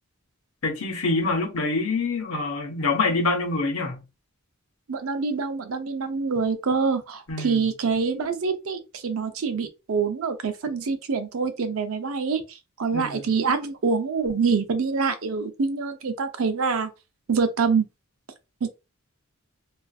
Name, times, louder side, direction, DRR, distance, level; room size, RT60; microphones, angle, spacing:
voice 1, 0.6-4.0 7.3-7.6 12.9-13.2, left 3 dB, 75° left, 0.8 m, -25 dB
voice 2, 4.9-16.9 17.3-17.8 18.6-18.7, right 5 dB, 70° right, 0.5 m, -25 dB
2.5 x 2.4 x 2.3 m
head